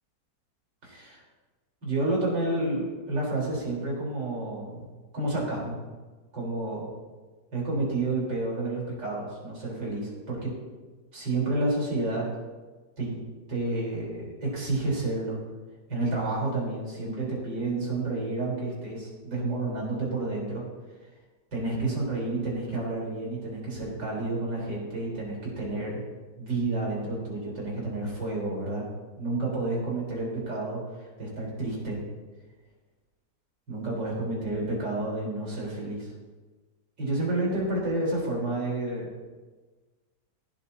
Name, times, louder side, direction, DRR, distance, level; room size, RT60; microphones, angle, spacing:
voice 1, 0.8-1.2 1.8-4.9 5.1-5.8 6.3-6.9 7.5-10.5 11.1-12.3 13.0-13.2 13.5-15.4 15.9-20.7 21.5-26.0 26.4-28.9 29.2-32.0 33.7-36.1 37.0-39.1, right 2 dB, 75° right, -4 dB, 5.1 m, -30 dB
17.0 x 12.5 x 2.9 m, 1.3 s
omnidirectional pair, 1.9 m